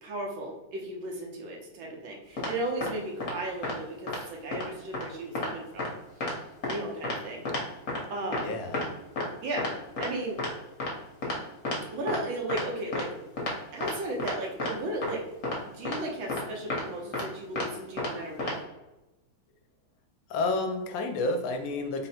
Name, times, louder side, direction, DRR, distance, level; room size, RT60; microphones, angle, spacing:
voice 1, 0.0-5.9 6.7-7.4 8.1-8.6 9.4-9.7 10.0-10.4 11.9-13.1 13.7-15.2 15.6-18.6, right 2 dB, 80° right, -1 dB, 1.6 m, -35 dB
sound 1, 2.4-2.5 2.8-2.9 3.2-3.3 3.6-3.7 4.1-4.2 4.5-4.6 4.9-5.0 5.4-5.5 5.8-5.9 6.2-6.3 6.6-6.8 7.0-7.2 7.5-7.6 7.9-8.0 8.3-8.4 8.7-8.9 9.2-9.3 9.6-9.7 10.0-10.1 10.4-10.5 10.8-10.9 11.2-11.4 11.6-11.8 12.1-12.2 12.5-12.6 12.9-13.0 13.4-13.5 13.8-13.9 14.2-14.3 14.6-14.7 15.0-15.1 15.4-15.6 15.8-16.0 16.3-16.4 16.7-16.8 17.1-17.2 17.6-17.7 18.0-18.1 18.4-18.5, left 2 dB, 50° left, 1.2 m, -31 dB
voice 2, 8.4-8.8 20.3-22.1, left 2 dB, 75° left, 5 dB, 1.3 m, -30 dB
3.8 x 2.1 x 4.2 m, 1.0 s
omnidirectional pair, 2.2 m